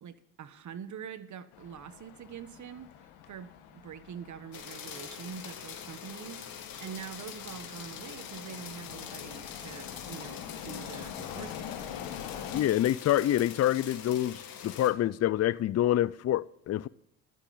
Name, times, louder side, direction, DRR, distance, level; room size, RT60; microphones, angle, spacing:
voice 1, 0.0-11.8, right 8 dB, 50° right, 1.3 m, -45 dB
sound 1, 1.5-12.6, left 9 dB, 85° left, 1.6 m, -45 dB
sound 2, 4.5-14.9, left 8 dB, 65° left, 2.5 m, -44 dB
voice 2, 12.5-16.9, left 12 dB, 45° left, 0.5 m, -27 dB
12.0 x 9.8 x 7.2 m
supercardioid pair, 75°, 37 cm